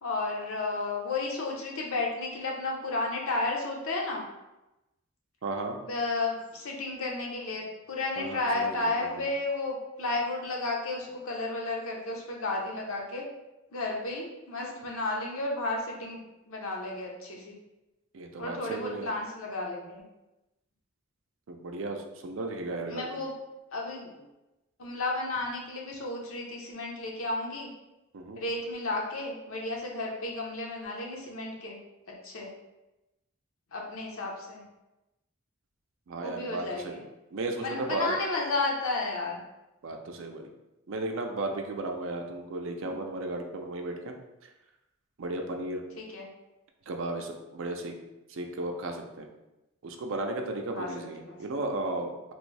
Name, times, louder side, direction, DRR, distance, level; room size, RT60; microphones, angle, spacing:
voice 1, 0.0-4.2 5.8-13.2 13.7-16.2 16.5-17.5 18.4-20.0 22.9-23.4 23.7-24.2 24.8-27.7 28.4-31.8 32.2-32.5 33.7-34.6 36.2-37.0 37.6-39.4 42.8-42.9 46.0-46.3 50.7-50.9 51.3-51.4, left 2 dB, 80° left, -1 dB, 0.7 m, -32 dB
voice 2, 5.4-5.8 8.2-9.3 18.1-19.1 21.5-23.2 28.1-28.4 36.1-37.0 37.3-38.2 39.8-40.5 40.9-44.1 45.2-45.8 46.9-47.9 48.3-49.3 49.8-52.1, right 2 dB, 65° right, 3 dB, 0.4 m, -34 dB
3.0 x 2.6 x 3.2 m, 0.98 s
head